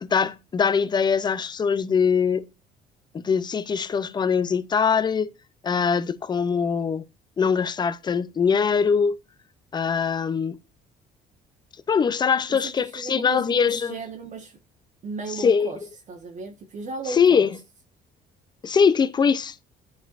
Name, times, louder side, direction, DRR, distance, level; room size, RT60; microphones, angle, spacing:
voice 1, 0.0-2.4 3.1-5.3 5.6-7.0 7.4-9.2 9.7-10.6 11.9-13.9 15.4-15.7 17.2-17.5 18.6-19.5, left 6 dB, 25° left, 0.5 m, -22 dB
voice 2, 12.5-14.6 15.0-15.8 16.1-17.5, right 3 dB, 45° right, 1.1 m, -35 dB
10.5 x 4.6 x 2.5 m
cardioid pair, 110°, 17 cm